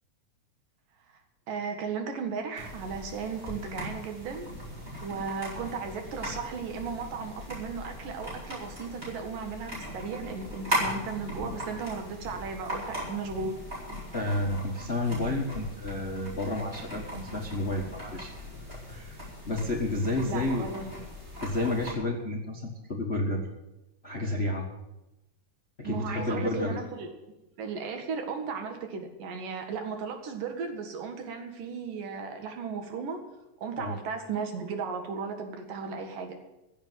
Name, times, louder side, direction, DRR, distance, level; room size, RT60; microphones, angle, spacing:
voice 1, 1.5-4.5 5.0-13.6 20.3-21.0 25.8-27.1 27.6-33.2 33.6-36.4, right 5 dB, 90° right, 5 dB, 3.5 m, -35 dB
sound 1, 2.6-21.9, equal, 20° right, 5.5 m, -38 dB
voice 2, 14.1-18.3 18.9-19.2 19.5-20.7 21.4-23.5 24.0-24.7 25.8-26.9 33.8-33.9, left 2 dB, 40° left, 1 dB, 0.8 m, -30 dB
15.5 x 7.3 x 9.1 m, 0.96 s
omnidirectional pair, 3.7 m